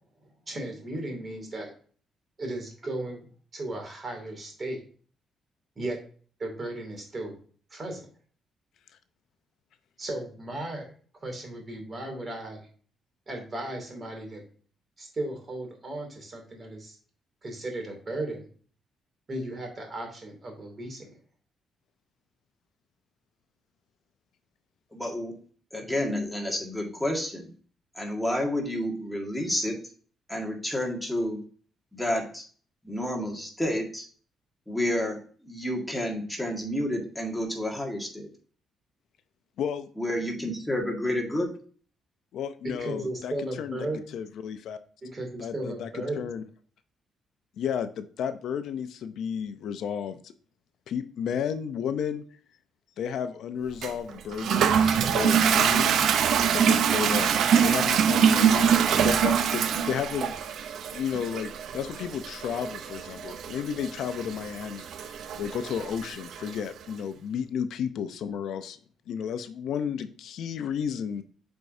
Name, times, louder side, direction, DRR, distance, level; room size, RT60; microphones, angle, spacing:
voice 1, 0.5-1.7 2.4-3.2 3.5-4.8 5.8-6.0 6.4-7.4 7.7-8.1 10.0-10.9 11.2-12.7 13.3-14.4 15.0-17.0 17.4-18.5 19.3-21.1 42.6-44.0 45.0-46.4, right 1 dB, 35° right, 2 dB, 2.6 m, -35 dB
voice 2, 24.9-25.4 25.7-27.5 28.0-29.8 30.3-31.4 31.9-32.4 32.8-34.1 34.7-38.3 40.0-41.6, left 1 dB, 5° left, 0 dB, 1.7 m, -30 dB
voice 3, 39.6-39.9 42.3-43.3 43.6-43.9 44.1-44.8 45.4-46.4 47.6-50.3 50.9-52.2 53.0-56.0 56.5-57.3 57.6-60.3 60.9-68.8 69.1-71.2, left 8 dB, 75° left, 10 dB, 0.5 m, -32 dB
Toilet flush, 53.8-66.6, right 7 dB, 70° right, 0.5 m, -24 dB
8.0 x 4.5 x 2.7 m, 0.44 s
cardioid pair, 90°, 0 cm